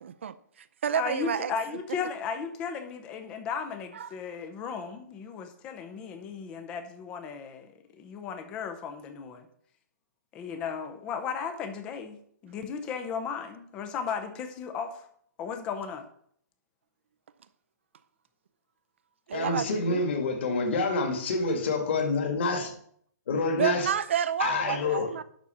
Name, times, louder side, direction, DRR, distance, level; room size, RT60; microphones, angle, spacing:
voice 1, 0.0-0.3 0.8-1.5 4.0-4.1 19.3-20.0 23.6-25.2, right 8 dB, 40° right, 0.5 m, -29 dB
voice 2, 0.9-9.5 10.3-15.1 15.4-16.0, left 6 dB, 10° left, 0.6 m, -35 dB
voice 3, 19.3-22.7 23.3-23.9 24.4-25.1, left 3 dB, 40° left, 2.0 m, -27 dB
11.0 x 4.2 x 7.0 m
hypercardioid pair, 180°, 10 cm